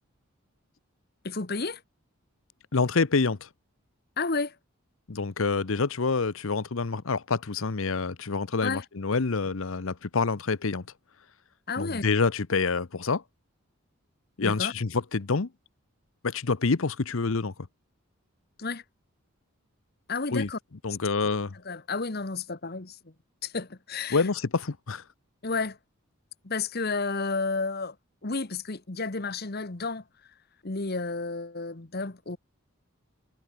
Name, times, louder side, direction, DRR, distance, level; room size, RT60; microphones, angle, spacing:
voice 1, 1.2-1.8 4.2-4.5 8.6-8.8 11.7-12.1 14.4-14.7 18.6-18.8 20.1-20.6 21.6-23.0 23.4-24.3 25.4-25.8 26.4-27.9 28.2-30.0 30.6-32.4, left 4 dB, 45° left, 1.2 m, -31 dB
voice 2, 2.7-3.5 5.1-10.8 11.8-13.2 14.4-15.5 16.2-17.5 20.3-20.5 20.8-21.5 24.1-25.0, left 4 dB, 70° left, 0.8 m, -27 dB
head